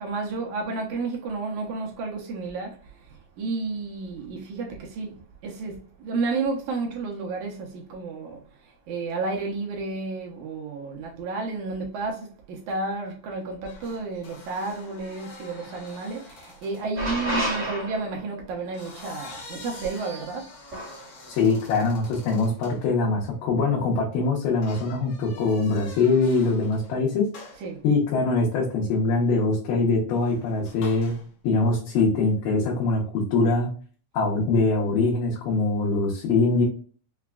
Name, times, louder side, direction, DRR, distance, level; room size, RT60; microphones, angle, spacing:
voice 1, 0.0-2.8 3.1-20.5 27.6-27.8, right 3 dB, 75° right, 2.0 m, -31 dB
sound 1, 13.6-16.9 18.5-22.8 24.6-27.0 27.3-27.7 30.1-31.3, left 3 dB, 65° left, 1.6 m, -46 dB
sound 2, 17.0-18.3 20.7-21.1, right 1 dB, 35° right, 1.4 m, -30 dB
voice 2, 21.3-27.3 27.8-31.1 31.4-33.7 34.1-36.6, left 3 dB, 85° left, 2.5 m, -23 dB
5.8 x 2.2 x 2.2 m
omnidirectional pair, 3.7 m